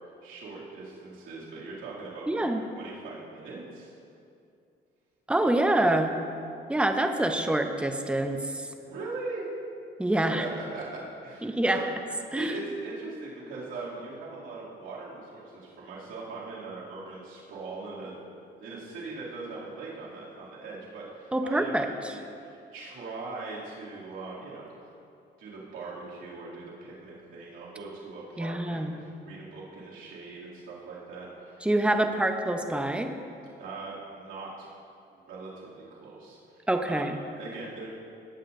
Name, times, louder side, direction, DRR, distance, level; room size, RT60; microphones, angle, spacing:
voice 1, 0.2-2.5 2.8-3.9 8.8-9.5 10.3-11.8 12.3-18.1 18.6-24.8 25.4-31.7 33.6-34.7 35.1-37.1 37.4-37.9, right 3 dB, 85° right, -8 dB, 2.6 m, -40 dB
voice 2, 2.3-2.6 5.3-6.2 6.7-8.7 10.0-10.4 11.4-11.8 12.3-12.5 21.3-22.2 28.4-29.0 31.6-33.1 36.7-37.2, right 1 dB, 5° right, 5 dB, 0.8 m, -26 dB
19.0 x 8.3 x 2.6 m, 2.5 s
cardioid pair, 90°, 20 cm